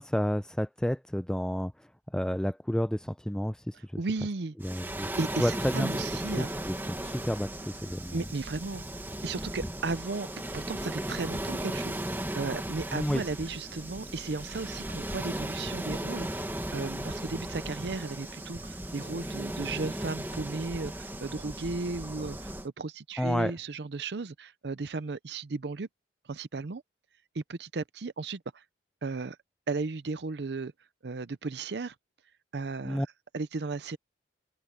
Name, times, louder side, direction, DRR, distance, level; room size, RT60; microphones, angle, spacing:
voice 1, 0.0-1.7 2.1-3.6 4.6-5.1 5.4-5.9 6.4-6.5 6.9-7.5 7.8-8.2 12.9-13.2 23.2-23.5 32.8-33.1, equal, 5° left, 0.5 m, -30 dB
voice 2, 3.7-4.5 5.2-6.6 8.1-8.8 9.2-25.9 26.3-26.8 27.3-28.6 29.0-29.4 29.7-30.7 31.0-31.9 32.5-33.1 33.3-34.0, right 3 dB, 75° right, 0.6 m, -35 dB
Waves surf, 4.6-22.7, right 1 dB, 10° right, 1.4 m, -36 dB
open air
head